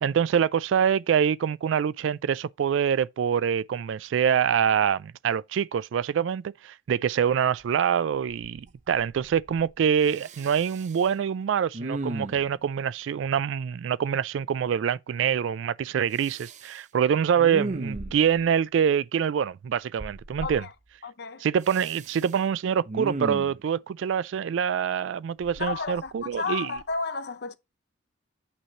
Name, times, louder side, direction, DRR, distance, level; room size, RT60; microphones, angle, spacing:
voice 1, 0.0-20.6 21.4-26.7, right 8 dB, 80° right, 0.3 m, -25 dB
Respiratory sounds, 7.6-7.7 8.1-8.7 8.9-9.7 10.0-11.1 11.7-12.6 16.2-16.8 17.3-18.4 20.0-20.6 21.6-22.3 22.8-23.6 25.4-26.4 26.8-27.0, right 2 dB, 40° right, 0.6 m, -36 dB
voice 2, 20.4-20.7 21.0-21.5 25.6-27.6, left 4 dB, 55° left, 0.7 m, -32 dB
8.8 x 3.1 x 6.4 m
head